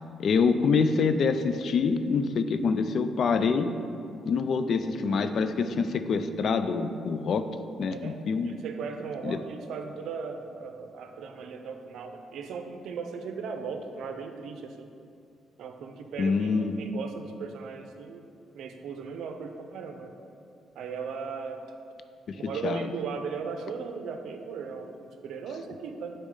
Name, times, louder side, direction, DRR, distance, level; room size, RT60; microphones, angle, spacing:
voice 1, 0.2-3.7 4.3-7.4 7.8-8.5 9.2-9.4 16.2-16.8 22.3-22.9, left 5 dB, 60° left, 10 dB, 0.4 m, -26 dB
voice 2, 8.4-14.9 15.6-18.2 18.5-20.1 20.8-21.6 22.4-26.1, right 5 dB, 75° right, 6 dB, 0.5 m, -37 dB
8.5 x 4.2 x 3.7 m, 2.5 s
cardioid pair, 90°, 0 cm